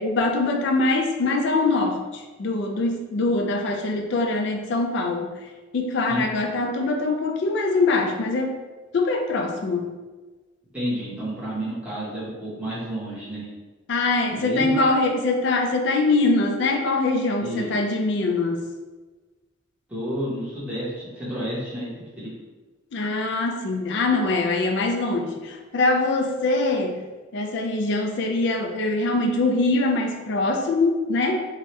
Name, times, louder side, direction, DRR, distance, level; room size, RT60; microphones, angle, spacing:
voice 1, 0.0-5.3 5.7-8.6 8.9-9.9 13.9-18.6 22.9-27.0 27.3-31.4, left 3 dB, 60° left, 3 dB, 0.4 m, -23 dB
voice 2, 10.7-13.5 14.3-14.7 17.4-17.7 19.9-21.9 22.2-22.3, equal, 5° right, -9 dB, 0.9 m, -30 dB
2.8 x 2.3 x 3.0 m, 1.3 s
head